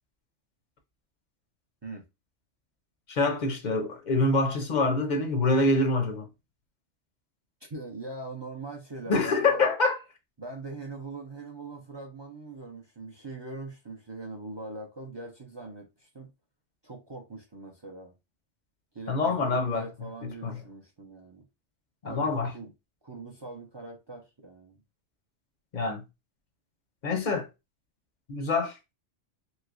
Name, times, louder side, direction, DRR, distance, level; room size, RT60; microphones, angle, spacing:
voice 1, 3.1-6.3 9.1-10.0 19.1-19.9 20.2-20.6 22.0-22.5 25.7-26.0 27.0-27.5 28.3-28.8, left 3 dB, 50° left, 0.6 m, -26 dB
voice 2, 7.7-9.6 10.4-16.3 16.8-18.1 18.9-21.5 22.0-22.7 23.0-24.8, right 3 dB, 40° right, 0.3 m, -41 dB
3.1 x 2.9 x 2.5 m
omnidirectional pair, 1.2 m